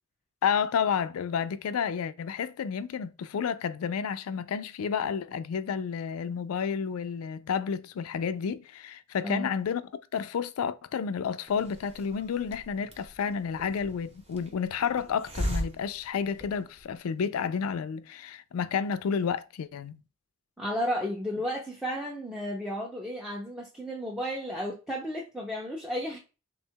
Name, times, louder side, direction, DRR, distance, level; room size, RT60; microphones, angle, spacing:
voice 1, 0.4-9.8 10.1-20.0, left 7 dB, 85° left, 0.4 m, -31 dB
Hiss, 11.5-17.0, equal, 30° right, 0.8 m, -38 dB
voice 2, 20.6-26.2, equal, 5° right, 0.5 m, -33 dB
3.5 x 2.3 x 4.4 m
head